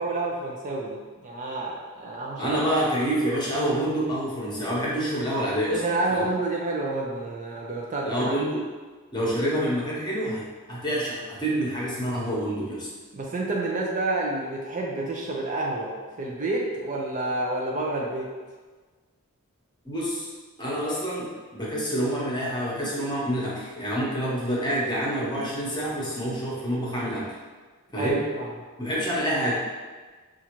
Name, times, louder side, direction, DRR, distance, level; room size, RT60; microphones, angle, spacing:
voice 1, 0.0-2.6 5.7-8.4 13.1-15.9 16.2-18.3 28.0-28.5, right 2 dB, 35° right, -2 dB, 0.5 m, -29 dB
voice 2, 2.4-5.8 6.1-6.2 8.0-8.6 9.1-12.9 19.8-20.3 20.6-27.3 27.9-28.2 28.8-29.5, right 1 dB, 20° left, -6 dB, 1.0 m, -27 dB
5.4 x 2.5 x 3.0 m, 1.4 s
head